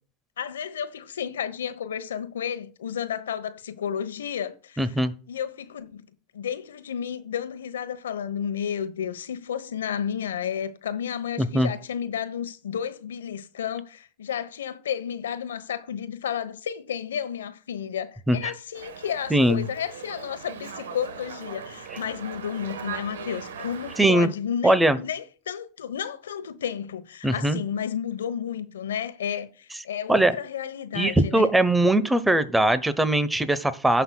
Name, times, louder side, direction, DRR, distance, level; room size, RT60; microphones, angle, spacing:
voice 1, 0.4-4.9 5.3-6.0 6.3-31.5, left 8 dB, 85° left, 1.0 m, -32 dB
voice 2, 4.8-5.1 11.4-11.7 18.3-18.5 19.3-19.6 24.0-24.3 24.6-25.0 27.2-27.6 30.1-30.3 30.9-34.0, right 1 dB, 5° right, 1.0 m, -21 dB
Dog, 18.7-24.0, right 6 dB, 85° right, 1.2 m, -39 dB
17.0 x 5.7 x 2.3 m
hypercardioid pair, 100°, 0 cm